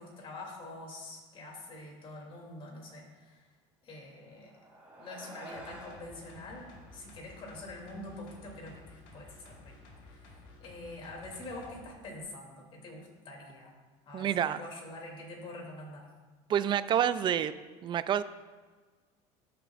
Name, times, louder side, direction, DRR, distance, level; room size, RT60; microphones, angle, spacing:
voice 1, 0.0-3.4 3.8-4.5 5.0-9.8 10.0-13.7 14.0-16.1, left 2 dB, 40° left, -1 dB, 2.9 m, -45 dB
sound 1, 4.1-8.9, right 1 dB, 10° right, 2.7 m, -52 dB
sound 2, 5.5-11.8 12.2-12.3, left 3 dB, 70° left, 2.0 m, -54 dB
voice 2, 14.1-14.6 16.5-17.5 17.8-18.2, right 9 dB, 35° right, 14 dB, 0.4 m, -28 dB
14.0 x 6.7 x 2.5 m, 1.4 s
supercardioid pair, 115°, 14 cm